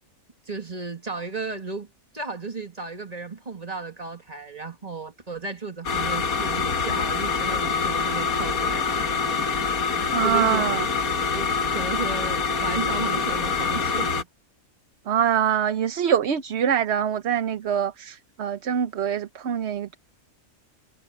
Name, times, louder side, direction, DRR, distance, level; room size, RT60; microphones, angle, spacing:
voice 1, 0.5-10.7 11.3-14.3, right 4 dB, 30° right, 2.0 m, -34 dB
sound 1, 5.9-14.2, left 5 dB, 80° left, 1.9 m, -25 dB
voice 2, 10.1-10.8 15.1-20.0, right 9 dB, 55° right, 1.0 m, -24 dB
omnidirectional pair, 1.5 m